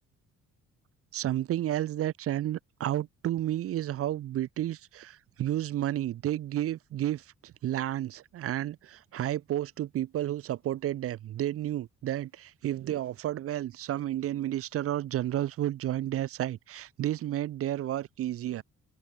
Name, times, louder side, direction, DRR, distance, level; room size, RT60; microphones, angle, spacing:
voice 1, 1.1-18.6, right 13 dB, 50° right, 0.4 m, -31 dB
cardioid pair, 90°, 30 cm